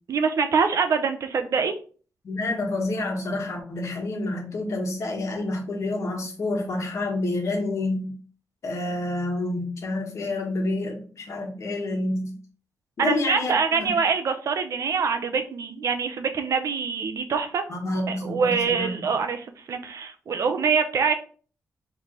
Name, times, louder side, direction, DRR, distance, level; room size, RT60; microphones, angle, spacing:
voice 1, 0.1-1.7 13.0-17.6 18.1-21.1, right 5 dB, 65° right, 7 dB, 0.6 m, -24 dB
voice 2, 2.2-8.1 8.6-12.4 13.0-13.5 13.8-13.9 17.7-19.1, left 2 dB, 55° left, 2 dB, 1.3 m, -28 dB
4.7 x 3.3 x 2.9 m, 0.40 s
wide cardioid pair, 140°, 6 cm